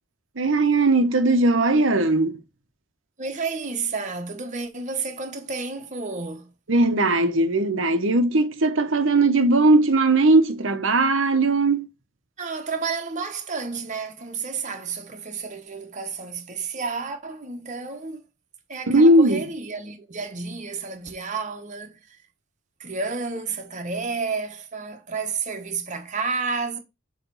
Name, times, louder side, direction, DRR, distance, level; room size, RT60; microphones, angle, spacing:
voice 1, 0.4-2.4 6.7-11.9 18.9-19.4, right 2 dB, 85° right, 1.1 m, -19 dB
voice 2, 3.2-6.5 12.4-18.2 18.7-22.2 22.8-26.8, right 4 dB, 40° right, 1.3 m, -31 dB
7.1 x 3.3 x 5.5 m
head